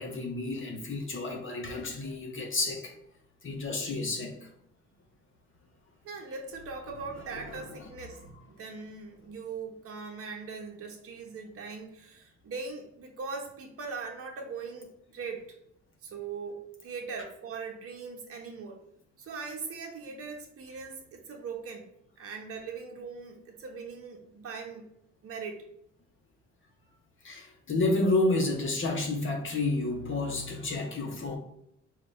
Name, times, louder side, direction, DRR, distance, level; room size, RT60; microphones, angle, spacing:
voice 1, 0.0-2.9 3.4-4.5 7.3-7.6 27.2-31.4, left 2 dB, 40° left, 0.8 m, -30 dB
voice 2, 6.0-8.2 8.5-15.6 16.0-18.8 19.2-24.9 25.2-25.6, right 4 dB, 50° right, 0.9 m, -40 dB
3.9 x 2.3 x 3.6 m
cardioid pair, 90°, 30 cm